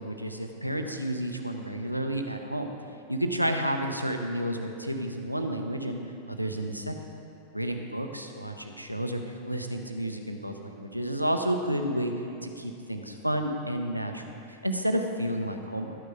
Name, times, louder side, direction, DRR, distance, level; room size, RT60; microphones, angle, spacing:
voice 1, 0.0-2.7 3.1-6.0 6.3-6.9 7.5-12.1 12.4-14.2 14.6-16.0, right 1 dB, 90° right, 5 dB, 0.7 m, -31 dB
12.5 x 9.3 x 3.9 m, 2.7 s
figure-of-eight pair, 90°, 0 cm